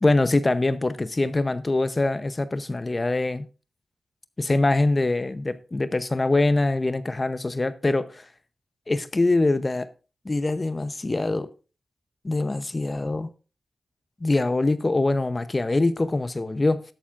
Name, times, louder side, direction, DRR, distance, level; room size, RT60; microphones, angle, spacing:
voice 1, 0.0-3.5 4.4-8.2 8.9-9.9 10.2-11.5 12.2-13.3 14.2-16.8, left 2 dB, 35° left, 0.8 m, -23 dB
13.5 x 11.0 x 2.5 m
cardioid pair, 55°, 0 cm